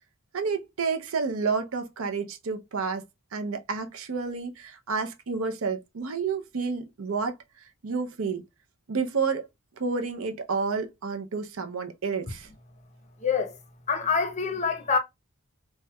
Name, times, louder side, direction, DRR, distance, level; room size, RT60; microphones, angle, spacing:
voice 1, 0.3-3.0 3.3-7.3 7.8-8.4 8.9-9.5 9.8-12.5, right 5 dB, 70° right, 0.5 m, -30 dB
voice 2, 13.2-13.6 13.9-15.0, left 5 dB, 30° left, 0.6 m, -25 dB
4.2 x 2.2 x 2.2 m
head